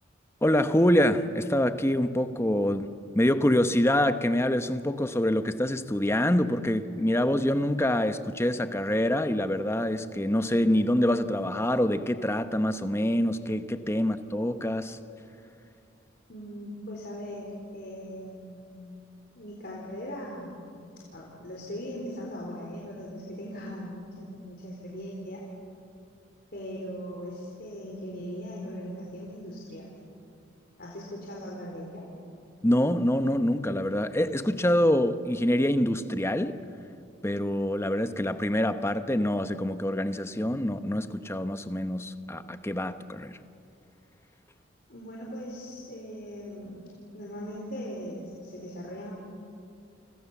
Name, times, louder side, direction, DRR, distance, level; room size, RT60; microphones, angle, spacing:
voice 1, 0.4-2.9 3.1-15.0 32.6-36.6 37.2-43.4, left 1 dB, 15° left, 1.0 m, -25 dB
voice 2, 16.3-18.6 19.3-20.8 21.1-25.4 26.5-29.9 30.8-32.1 44.9-49.1, equal, 50° left, 4.1 m, -39 dB
29.5 x 25.5 x 7.2 m
head